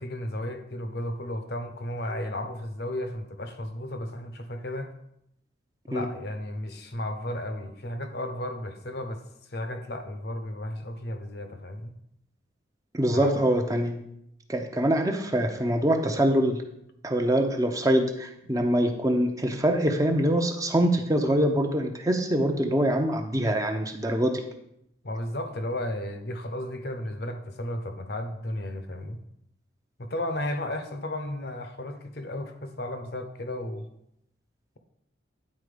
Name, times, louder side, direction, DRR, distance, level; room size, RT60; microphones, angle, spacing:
voice 1, 0.0-4.9 5.9-9.2 9.5-11.9 13.1-13.3 25.0-29.2 30.0-33.9, left 1 dB, 60° left, 8 dB, 0.8 m, -34 dB
voice 2, 12.9-14.0 14.5-16.6 17.0-24.4, right 1 dB, 20° right, 4 dB, 0.7 m, -24 dB
9.5 x 4.3 x 5.0 m, 0.78 s
head